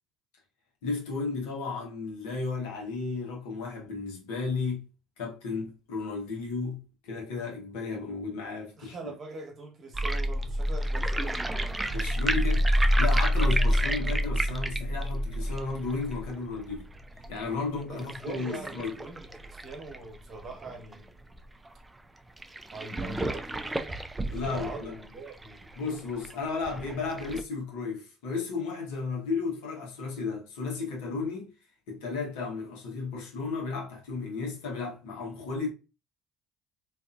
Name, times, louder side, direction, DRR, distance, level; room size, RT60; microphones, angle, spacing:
voice 1, 0.8-4.8 5.2-9.1 11.9-16.9 17.3-18.9 24.3-25.0 25.8-31.5 31.9-35.7, left 4 dB, 75° left, 1.0 m, -34 dB
voice 2, 8.8-11.4 17.9-21.1 22.7-24.0 24.3-25.7, right 3 dB, 45° right, 1.1 m, -42 dB
sound 1, 9.9-20.9 21.4-21.5 21.7-21.8 22.4-27.4, equal, 15° right, 0.4 m, -29 dB
2.6 x 2.5 x 2.4 m
hypercardioid pair, 65°, 0 cm